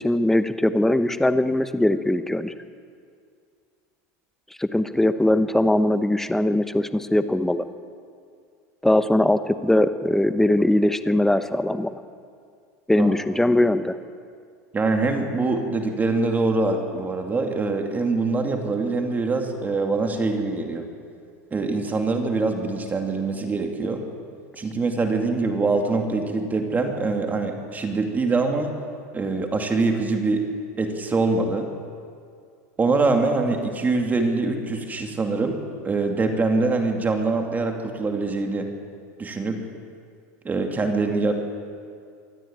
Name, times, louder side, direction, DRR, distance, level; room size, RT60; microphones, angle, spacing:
voice 1, 0.0-2.5 4.6-7.6 8.8-11.9 12.9-14.0, left 1 dB, 5° left, 11 dB, 1.0 m, -21 dB
voice 2, 14.7-20.9 21.5-24.0 24.6-28.7 29.1-30.4 30.8-31.7 32.8-35.6 35.8-38.7 39.2-39.6 40.4-41.3, right 3 dB, 20° right, 4 dB, 2.6 m, -24 dB
23.5 x 14.0 x 8.9 m, 2.3 s
supercardioid pair, 115°, 9 cm